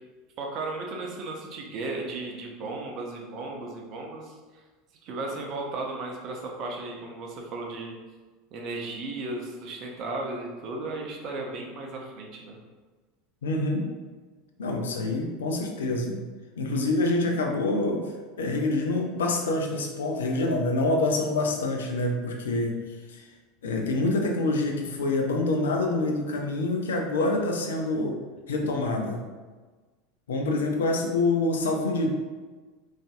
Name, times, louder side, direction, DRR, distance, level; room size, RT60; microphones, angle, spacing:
voice 1, 0.4-4.4 5.0-8.0 8.5-12.6 30.9-31.0, right 2 dB, 40° right, 0 dB, 0.6 m, -35 dB
voice 2, 13.4-13.8 14.6-16.2 16.6-18.0 18.4-22.8 23.1-23.3 23.6-28.2 28.5-29.2 30.3-32.1, left 2 dB, 65° left, 2 dB, 0.4 m, -26 dB
3.8 x 2.5 x 2.4 m, 1.3 s
figure-of-eight pair, 75°, 0 cm